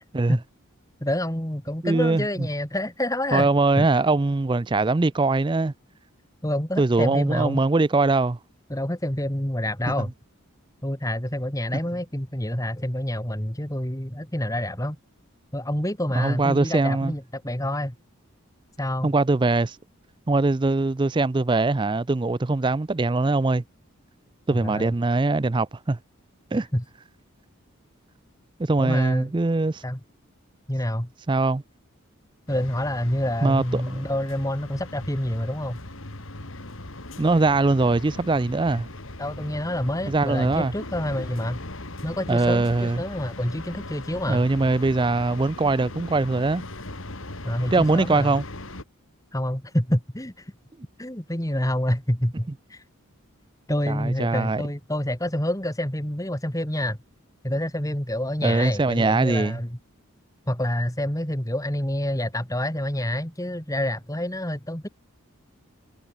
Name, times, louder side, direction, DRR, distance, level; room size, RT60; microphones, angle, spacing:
voice 1, 1.0-3.5 3.8-3.9 6.4-7.6 8.7-10.1 10.8-15.0 15.5-17.9 18.8-19.1 24.6-24.9 26.7-26.8 28.8-29.3 29.8-30.0 30.7-31.1 32.5-35.8 39.2-41.6 42.0-44.4 47.4-48.4 49.3-50.5 51.0-52.8 53.7-57.0 57.4-59.8 60.5-64.9, left 1 dB, 15° left, 2.5 m, -27 dB
voice 2, 1.8-2.3 3.3-5.7 6.8-8.4 16.2-17.1 19.0-19.8 20.3-23.6 24.5-26.0 26.5-26.7 28.6-29.8 31.3-31.6 33.4-34.0 37.2-38.9 40.1-40.7 42.3-43.0 44.3-46.6 47.7-48.4 53.9-54.6 58.4-59.6, right 3 dB, 20° right, 0.4 m, -22 dB
sound 1, 32.5-48.8, left 2 dB, 65° left, 2.8 m, -39 dB
head